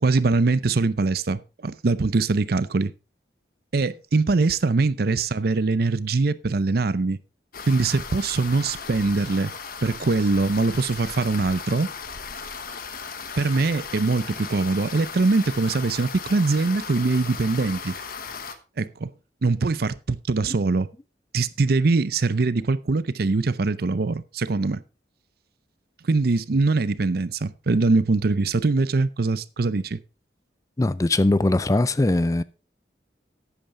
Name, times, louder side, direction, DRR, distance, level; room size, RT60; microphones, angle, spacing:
voice 1, 0.0-2.9 3.7-7.2 7.7-9.5 9.8-11.9 13.4-17.9 18.8-19.1 19.4-20.9 21.3-24.8 26.0-30.0, right 3 dB, 60° right, 0.6 m, -22 dB
sound 1, 7.5-18.6, left 5 dB, 55° left, 1.2 m, -36 dB
voice 2, 30.8-32.4, left 2 dB, 20° left, 0.4 m, -20 dB
11.0 x 8.8 x 3.7 m
head